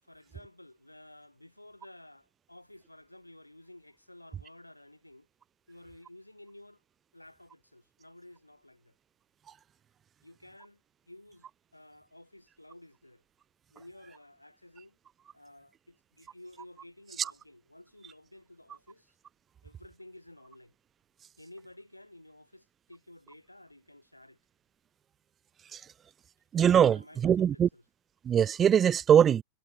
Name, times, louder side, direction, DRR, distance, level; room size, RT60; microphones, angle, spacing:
voice 1, 0.0-5.3 5.7-6.8 7.1-9.0 10.2-13.2 13.7-15.0 15.3-19.1 19.6-20.7 21.4-24.4 26.8-27.8, left 1 dB, 85° left, 7.7 m, -53 dB
voice 2, 26.5-27.7 28.3-29.4, right 9 dB, 25° right, 0.4 m, -22 dB
figure-of-eight pair, 90°, 0 cm